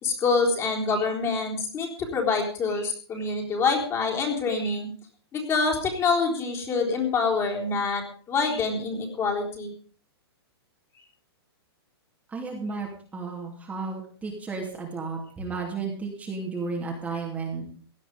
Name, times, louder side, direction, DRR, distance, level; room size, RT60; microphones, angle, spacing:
voice 1, 0.0-4.9 5.3-9.7, left 4 dB, 20° left, 0 dB, 3.9 m, -26 dB
voice 2, 12.3-17.7, right 4 dB, 10° right, -1 dB, 2.8 m, -33 dB
17.5 x 11.5 x 5.3 m, 0.44 s
hypercardioid pair, 155°, 14 cm